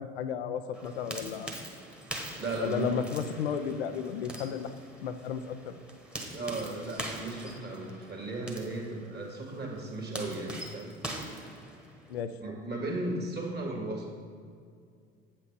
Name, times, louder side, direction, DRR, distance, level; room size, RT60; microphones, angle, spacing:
voice 1, 0.0-1.5 2.6-4.7 5.0-5.7 12.1-12.3, left 7 dB, 80° left, 9 dB, 0.5 m, -33 dB
sound 1, 0.7-12.2, right 1 dB, 5° right, 1.3 m, -43 dB
voice 2, 2.4-3.1 6.3-11.0 12.4-14.1, right 2 dB, 30° right, 1 dB, 1.9 m, -36 dB
7.9 x 6.0 x 4.8 m, 2.1 s
figure-of-eight pair, 60°, 31 cm